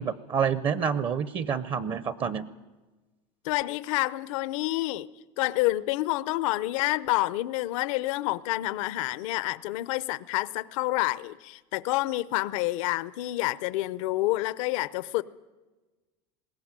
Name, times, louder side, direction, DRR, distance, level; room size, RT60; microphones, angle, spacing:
voice 1, 0.0-2.5, right 7 dB, 30° right, 0.7 m, -28 dB
voice 2, 3.4-5.1 5.4-15.2, left 18 dB, 75° left, 0.7 m, -28 dB
20.5 x 17.5 x 8.9 m
supercardioid pair, 150°, 17 cm